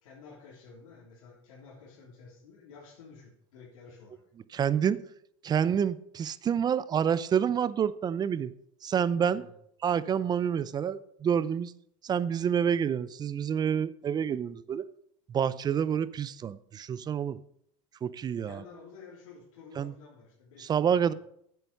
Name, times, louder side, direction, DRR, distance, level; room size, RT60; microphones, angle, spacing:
voice 1, 0.0-4.2 9.3-9.5 18.4-21.1, left 5 dB, 85° left, 3.2 m, -51 dB
voice 2, 4.5-5.0 5.4-8.5 8.8-9.4 9.8-11.7 12.0-14.9 15.3-17.4 18.0-18.6 19.8-19.9 20.6-21.1, right 8 dB, 25° right, 0.5 m, -28 dB
9.2 x 7.9 x 5.4 m
supercardioid pair, 115°, 17 cm